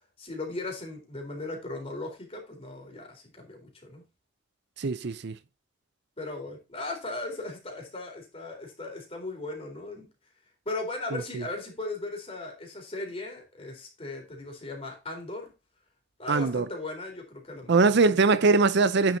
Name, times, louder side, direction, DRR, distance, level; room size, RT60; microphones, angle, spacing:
voice 1, 0.2-4.0 6.2-10.1 10.7-15.5 16.2-18.2, left 2 dB, 30° left, 3.9 m, -37 dB
voice 2, 4.8-5.3 11.1-11.4 16.3-16.7 17.7-19.2, right 4 dB, 60° right, 0.6 m, -22 dB
9.6 x 7.4 x 2.7 m
head